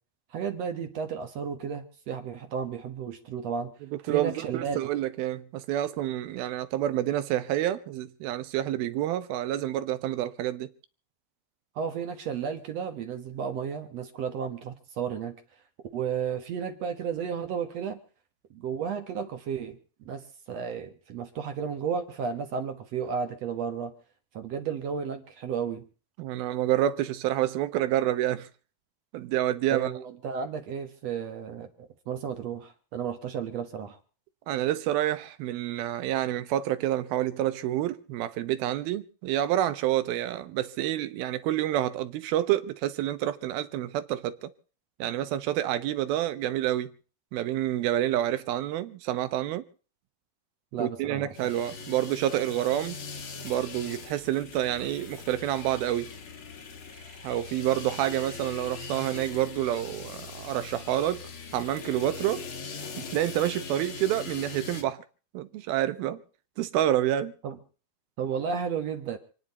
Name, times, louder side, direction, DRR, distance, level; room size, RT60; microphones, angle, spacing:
voice 1, 0.3-3.7 4.1-4.8 11.8-15.4 15.9-18.0 18.5-19.8 20.1-23.9 24.3-25.8 29.7-34.0 50.7-51.5 67.4-67.6 68.2-69.2, right 7 dB, 60° right, 2.0 m, -33 dB
voice 2, 3.9-10.7 26.2-28.5 29.1-29.9 34.5-44.5 45.0-46.9 47.3-49.6 50.8-53.0 53.4-56.1 56.9-61.2 61.5-62.4 63.0-65.0 65.3-66.2 66.6-67.3, right 12 dB, 80° right, 2.8 m, -28 dB
sound 1, 51.3-64.8, left 4 dB, 50° left, 1.7 m, -41 dB
28.0 x 10.0 x 4.2 m
omnidirectional pair, 4.3 m